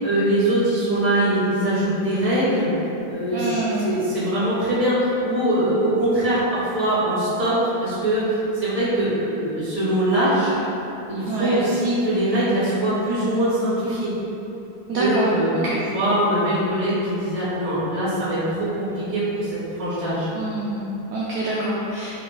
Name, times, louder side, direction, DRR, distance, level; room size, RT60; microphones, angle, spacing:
voice 1, 0.0-2.7 3.1-10.5 11.1-14.1 14.9-15.5 15.9-20.3, right 1 dB, 25° right, -12 dB, 1.5 m, -22 dB
voice 2, 3.3-4.0 11.3-11.5 14.9-15.3 15.5-15.8 20.3-22.2, right 2 dB, 70° right, -7 dB, 1.0 m, -26 dB
3.5 x 2.8 x 3.8 m, 2.9 s
omnidirectional pair, 2.0 m